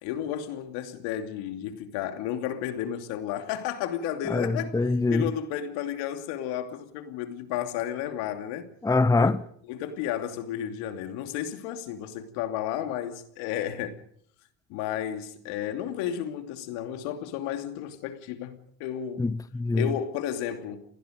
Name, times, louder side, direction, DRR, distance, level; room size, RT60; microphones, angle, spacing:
voice 1, 0.0-4.8 5.1-8.8 9.2-9.3 9.7-14.0 14.7-19.3 19.7-20.8, left 10 dB, 75° left, 2.8 m, -32 dB
voice 2, 4.3-5.3 8.8-9.4 19.2-19.9, left 3 dB, 10° left, 0.9 m, -24 dB
28.0 x 21.0 x 5.2 m
hypercardioid pair, 70°, 40 cm